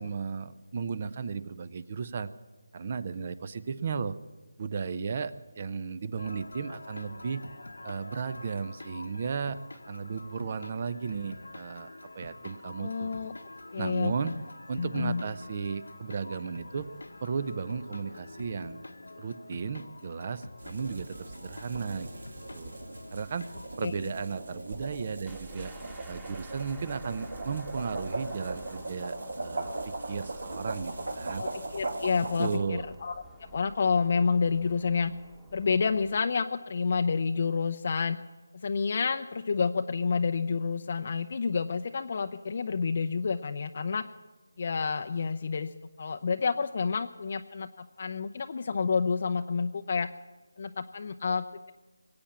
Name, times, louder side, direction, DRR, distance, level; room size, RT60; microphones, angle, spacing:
voice 1, 0.0-2.3 2.7-4.2 4.6-7.4 7.8-9.6 9.9-11.9 12.1-13.1 13.8-14.3 14.7-16.9 17.2-18.8 19.2-22.3 22.5-22.8 23.1-25.7 26.1-31.4 32.4-32.8, right 5 dB, 35° right, 15 dB, 0.7 m, -35 dB
sound 1, 6.2-23.8, left 2 dB, 85° left, 1.2 m, -47 dB
voice 2, 12.8-13.3 13.7-14.3 14.8-15.2 23.8-23.9 31.4-33.1 33.4-35.1 35.5-38.2 38.6-44.0 44.6-50.1 50.6-51.7, left 5 dB, 45° left, 6 dB, 0.6 m, -29 dB
sound 2, 20.6-32.6, right 2 dB, 70° right, 2.7 m, -39 dB
sound 3, 25.2-36.2, right 2 dB, 10° right, 1.4 m, -52 dB
22.0 x 8.7 x 7.3 m, 1.3 s
figure-of-eight pair, 165°, 0 cm